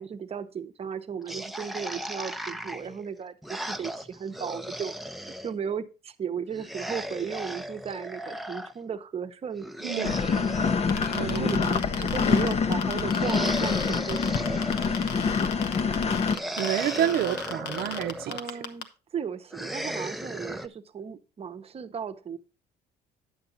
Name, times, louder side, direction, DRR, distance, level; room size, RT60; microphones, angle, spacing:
voice 1, 0.0-4.9 5.2-9.7 9.9-10.2 11.2-14.7 18.3-18.9 19.1-22.4, right 7 dB, 35° right, 0.9 m, -35 dB
sound 1, 1.3-5.5 6.5-8.7 9.6-11.9 13.1-15.3 16.3-18.5 19.5-20.7, equal, ahead, 0.6 m, -36 dB
sound 2, 10.0-16.4, left 5 dB, 40° left, 0.8 m, -26 dB
sound 3, 10.9-18.8, left 7 dB, 80° left, 1.1 m, -35 dB
voice 2, 11.1-11.7 15.8-16.1 16.6-18.4, right 11 dB, 65° right, 0.7 m, -29 dB
10.0 x 6.8 x 4.0 m
cardioid pair, 110°, 17 cm